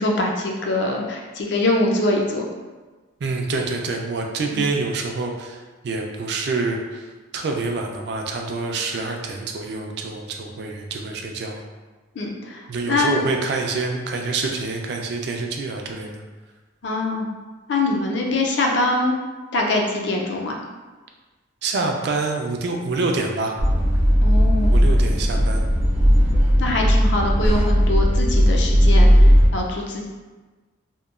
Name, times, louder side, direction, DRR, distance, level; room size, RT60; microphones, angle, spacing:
voice 1, 0.0-2.4 4.5-4.6 12.2-13.3 16.8-17.3 17.7-19.1 19.5-20.6 24.2-24.8 26.6-30.1, left 2 dB, 65° left, 0 dB, 0.4 m, -23 dB
voice 2, 3.2-5.6 5.8-7.0 7.3-11.6 12.7-16.2 21.6-23.5 24.7-25.6, right 3 dB, 55° right, 2 dB, 0.3 m, -26 dB
sound 1, 23.6-29.5, equal, 85° right, 0.7 m, -16 dB
2.9 x 2.1 x 2.3 m, 1.3 s
head